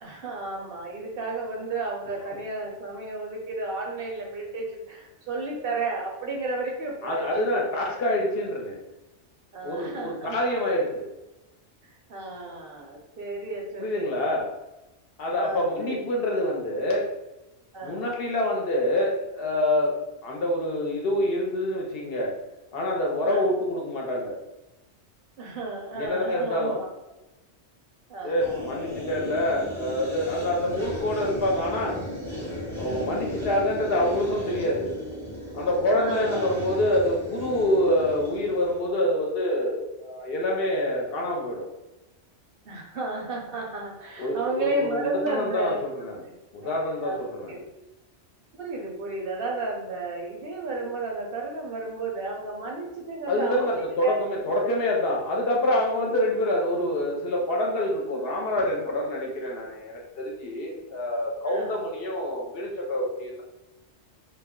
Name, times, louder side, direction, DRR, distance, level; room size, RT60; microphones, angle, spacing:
voice 1, 0.0-7.3 7.9-8.0 9.5-10.5 11.8-14.3 15.3-16.0 17.7-18.0 23.3-23.4 25.4-26.9 28.1-28.7 35.9-36.4 42.7-45.8 46.6-47.2 47.5-47.6 48.6-54.1 61.5-61.7, right 2 dB, 60° right, -1 dB, 0.7 m, -33 dB
voice 2, 7.0-8.8 9.6-11.1 13.8-14.5 15.2-17.1 17.8-20.0 20.2-22.3 22.7-24.4 25.9-26.8 28.2-32.0 32.8-34.9 35.5-41.7 44.2-46.3 46.5-47.6 53.3-63.4, left 1 dB, 65° left, -1 dB, 0.7 m, -26 dB
sound 1, 28.4-38.8, left 1 dB, 5° left, 0.5 m, -35 dB
2.3 x 2.1 x 3.5 m, 0.99 s
omnidirectional pair, 1.2 m